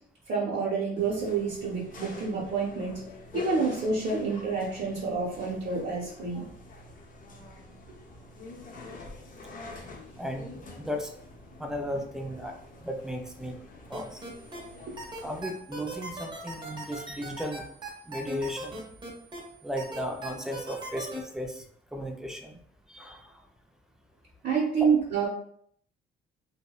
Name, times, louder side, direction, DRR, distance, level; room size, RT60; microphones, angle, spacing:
voice 1, 0.3-3.0 3.3-6.4 14.9-15.0 24.4-25.3, right 5 dB, 60° right, -6 dB, 0.8 m, -28 dB
sound 1, 1.0-15.4, left 2 dB, 45° left, 0.6 m, -46 dB
voice 2, 10.1-11.1 11.6-12.5 12.8-13.6 13.9-14.2 15.2-17.6 18.1-18.8 19.6-21.6 21.9-22.5 22.9-23.3, equal, 5° right, 3 dB, 0.4 m, -35 dB
sound 2, 13.9-14.6 15.0-19.4 19.8-21.2, right 1 dB, 20° right, 0.8 m, -38 dB
2.7 x 2.1 x 2.3 m, 0.65 s
cardioid pair, 90°, 20 cm